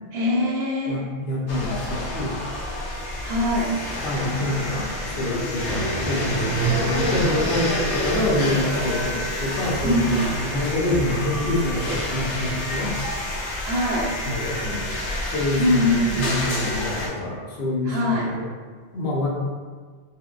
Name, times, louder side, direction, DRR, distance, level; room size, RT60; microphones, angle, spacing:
voice 1, 0.1-1.1 3.2-3.8 9.8-10.3 13.6-14.2 15.6-16.5 17.8-18.4, left 1 dB, 70° right, -2 dB, 0.9 m, -23 dB
voice 2, 0.9-2.3 4.0-13.0 14.3-14.9 15.3-18.4 18.9-19.3, left 1 dB, 65° left, -4 dB, 0.9 m, -26 dB
sound 1, 1.5-17.1, left 1 dB, 85° left, 1.0 m, -28 dB
Accelerating revving vroom, 5.0-11.0, right 2 dB, 50° right, 1.7 m, -31 dB
4.3 x 2.1 x 2.4 m, 1.5 s
omnidirectional pair, 1.1 m